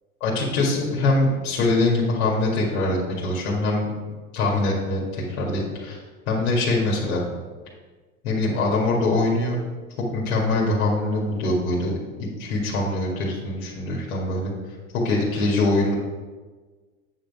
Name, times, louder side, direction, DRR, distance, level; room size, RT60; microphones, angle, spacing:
voice 1, 0.2-3.9 4.3-6.0 6.3-7.2 8.2-9.6 10.0-11.9 12.2-14.5 14.9-15.9, left 2 dB, 70° left, -3 dB, 2.1 m, -23 dB
9.2 x 5.3 x 4.8 m, 1.4 s
hypercardioid pair, 95°, 44 cm